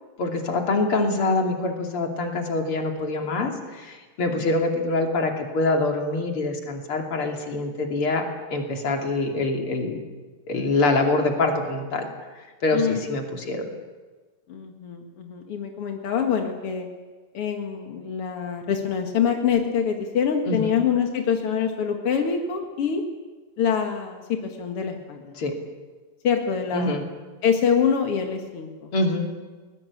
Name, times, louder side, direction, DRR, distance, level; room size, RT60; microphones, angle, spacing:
voice 1, 0.2-10.0 10.5-12.1 12.6-13.7 20.4-20.7 25.4-25.6 26.7-27.0 28.9-29.3, left 2 dB, 35° left, 3 dB, 2.8 m, -25 dB
voice 2, 14.5-16.9 17.3-23.0 23.6-25.3 26.2-27.0 27.4-28.9, left 7 dB, 60° left, 3 dB, 1.4 m, -25 dB
22.0 x 19.5 x 8.6 m, 1.3 s
omnidirectional pair, 5.4 m